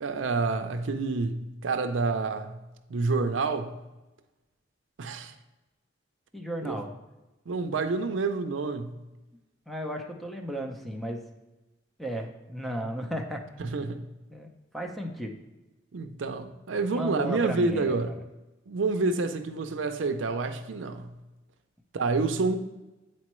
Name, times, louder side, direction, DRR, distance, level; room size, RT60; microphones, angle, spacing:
voice 1, 0.0-2.5 2.9-3.7 5.0-5.3 6.6-6.8 7.5-8.9 13.6-14.0 15.9-18.1 18.7-21.1 21.9-22.6, right 3 dB, 80° right, 7 dB, 0.5 m, -28 dB
voice 2, 6.3-6.9 9.7-11.2 12.0-13.4 14.3-14.5 14.7-15.4 16.9-18.1, equal, ahead, 2 dB, 0.6 m, -34 dB
8.5 x 4.4 x 3.1 m, 1.1 s
head